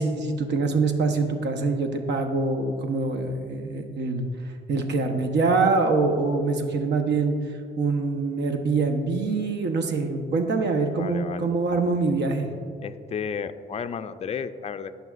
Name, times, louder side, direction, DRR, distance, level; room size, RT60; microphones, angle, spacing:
voice 1, 0.0-4.3 4.7-7.4 7.8-12.5, right 3 dB, 60° right, 5 dB, 1.0 m, -24 dB
voice 2, 11.0-11.5 12.8-15.0, left 6 dB, 30° left, 10 dB, 0.4 m, -33 dB
15.0 x 5.7 x 2.4 m, 2.3 s
cardioid pair, 90°, 20 cm